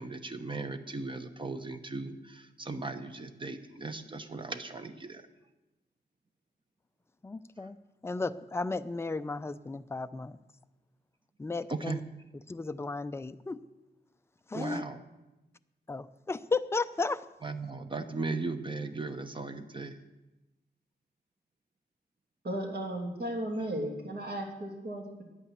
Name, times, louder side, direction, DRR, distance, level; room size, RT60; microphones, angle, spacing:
voice 1, 0.0-5.3 11.7-12.0 14.5-15.0 17.4-20.0, right 3 dB, 25° right, 7 dB, 0.8 m, -37 dB
voice 2, 7.2-7.8 8.0-10.4 11.4-12.0 12.5-13.6 14.5-14.8 15.9-17.2, left 3 dB, 15° left, 12 dB, 0.4 m, -34 dB
voice 3, 22.4-25.2, right 1 dB, 60° right, 0 dB, 2.7 m, -35 dB
10.5 x 8.7 x 8.4 m, 1.0 s
wide cardioid pair, 145°, 18 cm